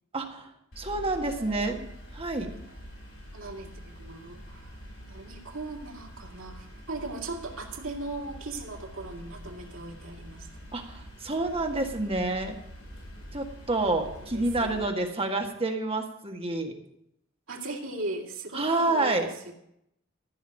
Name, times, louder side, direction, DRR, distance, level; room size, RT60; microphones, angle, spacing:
voice 1, 0.1-0.5 0.8-1.9 2.1-2.5 10.7-12.6 13.3-16.7 18.5-19.3, right 2 dB, 30° right, 3 dB, 1.8 m, -28 dB
sound 1, 0.7-14.9, equal, 65° left, 5.3 m, -45 dB
voice 2, 1.1-1.7 3.3-4.8 5.1-10.5 14.2-15.0 17.5-19.5, right 2 dB, 80° right, 0 dB, 2.7 m, -39 dB
14.5 x 6.3 x 9.9 m, 0.77 s
head